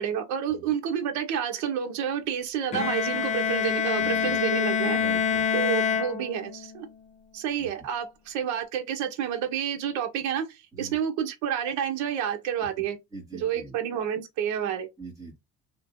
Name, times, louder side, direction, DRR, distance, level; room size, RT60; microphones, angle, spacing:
voice 1, 0.0-5.0 5.5-6.9 7.3-13.0 13.3-14.9, right 9 dB, 65° right, 1.1 m, -29 dB
Bowed string instrument, 2.7-6.7, left 7 dB, 25° left, 0.4 m, -26 dB
voice 2, 4.0-4.4 4.9-5.4 7.6-7.7 10.7-11.0 12.8-12.9 13.1-13.8 15.0-15.4, right 3 dB, 10° right, 2.1 m, -42 dB
3.1 x 2.9 x 2.7 m
cardioid pair, 155°, 32 cm